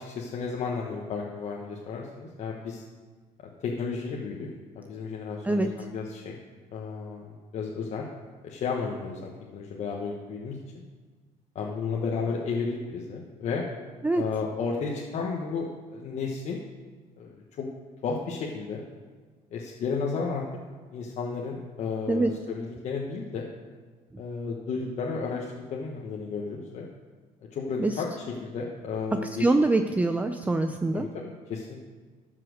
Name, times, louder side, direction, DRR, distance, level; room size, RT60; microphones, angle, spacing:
voice 1, 0.0-2.8 3.6-4.5 4.7-6.4 6.7-8.1 8.4-10.6 11.5-13.6 14.1-16.6 17.2-17.7 18.0-18.8 19.5-20.4 20.9-23.4 24.2-26.9 27.5-29.5 30.9-31.8, left 5 dB, 55° left, -2 dB, 1.3 m, -33 dB
voice 2, 29.4-31.1, right 2 dB, 10° right, 7 dB, 0.5 m, -24 dB
13.0 x 5.9 x 6.5 m, 1.4 s
cardioid pair, 110°, 14 cm